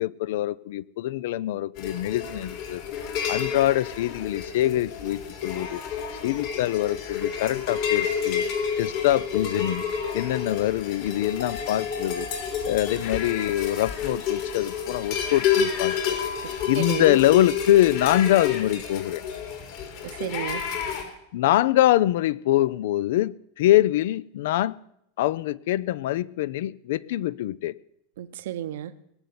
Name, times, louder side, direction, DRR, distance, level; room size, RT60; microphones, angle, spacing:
voice 1, 0.0-2.8 3.3-5.8 6.2-8.5 8.8-9.8 10.1-12.3 12.6-19.2 21.3-24.8 25.2-27.8, left 14 dB, 70° left, 22 dB, 0.5 m, -24 dB
sound 1, 1.8-21.0, left 7 dB, 50° left, 3.6 m, -29 dB
voice 2, 16.4-17.2 20.0-20.6 28.2-28.9, right 11 dB, 75° right, 11 dB, 0.9 m, -33 dB
19.5 x 6.9 x 9.5 m, 0.76 s
supercardioid pair, 150°, 0 cm